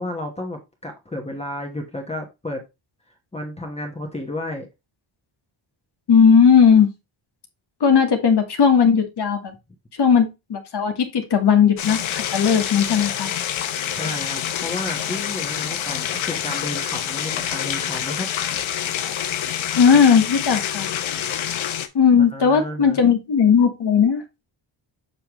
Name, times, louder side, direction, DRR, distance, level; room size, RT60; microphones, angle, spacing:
voice 1, 0.0-2.6 3.3-4.7 13.9-18.3 22.3-23.0, left 1 dB, 15° left, 1.3 m, -32 dB
voice 2, 6.1-6.9 7.8-9.5 10.0-13.3 19.8-20.9 21.9-24.2, left 6 dB, 55° left, 1.4 m, -17 dB
sound 1, 11.8-21.9, left 10 dB, 80° left, 1.0 m, -27 dB
6.7 x 5.5 x 3.0 m
wide cardioid pair, 140°, 47 cm